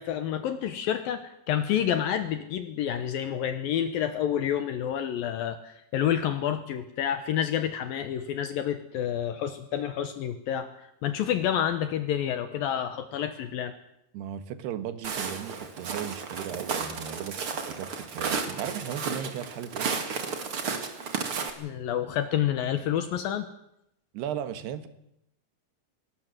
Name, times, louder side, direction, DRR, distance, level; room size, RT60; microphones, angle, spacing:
voice 1, 0.0-13.7 21.6-23.5, left 10 dB, 70° left, 10 dB, 2.6 m, -29 dB
voice 2, 14.1-17.4 17.7-19.9 24.1-24.9, right 9 dB, 75° right, 12 dB, 3.3 m, -36 dB
Walk footsteps, 15.0-21.5, right 5 dB, 40° right, 2.2 m, -33 dB
21.5 x 19.0 x 7.6 m, 0.79 s
omnidirectional pair, 4.8 m